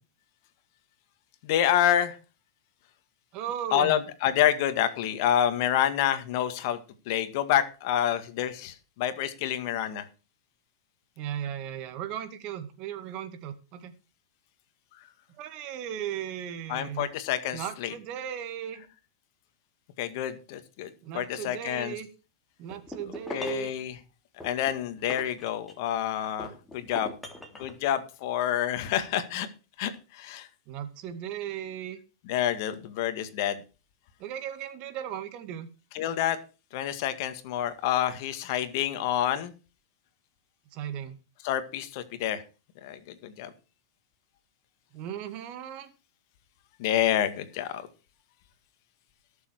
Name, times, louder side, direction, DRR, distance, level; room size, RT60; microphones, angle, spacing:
voice 1, 1.4-2.2 3.7-6.8 7.1-10.1 16.7-17.9 20.0-21.9 23.3-23.9 24.4-27.2 27.6-29.5 29.8-30.5 32.3-33.6 35.9-36.4 36.7-39.5 41.4-42.4 42.8-43.5 46.8-47.8, left 11 dB, 55° left, 11 dB, 2.0 m, -28 dB
voice 2, 3.3-4.0 11.2-13.9 15.4-17.1 17.5-18.8 21.0-22.1 22.6-23.7 30.7-32.0 34.2-35.7 40.7-41.2 44.9-45.9, right 10 dB, 45° right, 9 dB, 2.2 m, -36 dB
sound 1, 22.7-23.7 24.4-26.0 26.4-27.8, left 1 dB, 5° left, 3.3 m, -41 dB
18.0 x 7.2 x 4.7 m, 0.33 s
hypercardioid pair, 125°, 2 cm